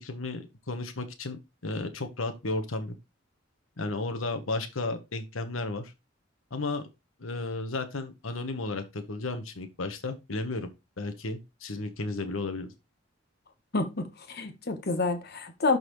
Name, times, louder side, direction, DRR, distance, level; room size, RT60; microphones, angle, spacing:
voice 1, 0.0-2.9 3.8-5.9 6.5-6.8 7.2-10.7 11.0-12.7, left 2 dB, 85° left, 1.2 m, -33 dB
voice 2, 13.7-15.8, left 3 dB, 50° left, 1.1 m, -28 dB
12.0 x 4.1 x 3.1 m
head